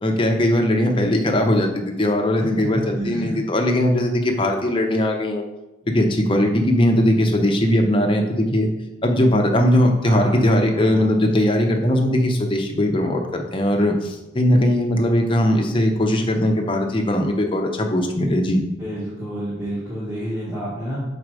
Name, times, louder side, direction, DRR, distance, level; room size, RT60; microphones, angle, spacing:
voice 1, 0.0-5.4 5.9-8.7 9.0-18.6, left 1 dB, 25° left, 3 dB, 0.7 m, -19 dB
voice 2, 2.4-3.4 10.0-11.1 18.8-21.0, equal, 15° right, -10 dB, 1.3 m, -29 dB
6.3 x 4.2 x 4.8 m, 1.0 s
head